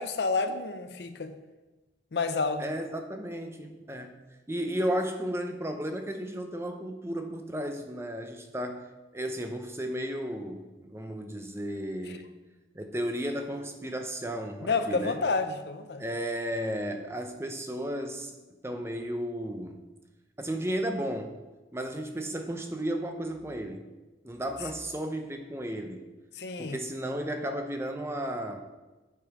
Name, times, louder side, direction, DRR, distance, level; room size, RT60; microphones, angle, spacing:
voice 1, 0.0-1.3 2.1-2.6 12.1-12.2 14.6-16.0 26.4-26.8, left 4 dB, 65° left, 9 dB, 0.6 m, -29 dB
voice 2, 2.6-4.2 4.5-8.9 9.1-12.3 12.7-15.2 16.0-18.4 18.6-19.8 20.4-21.4 21.7-23.9 24.2-26.1 26.6-28.6, equal, 15° right, 5 dB, 0.6 m, -34 dB
7.5 x 5.3 x 4.8 m, 1.2 s
head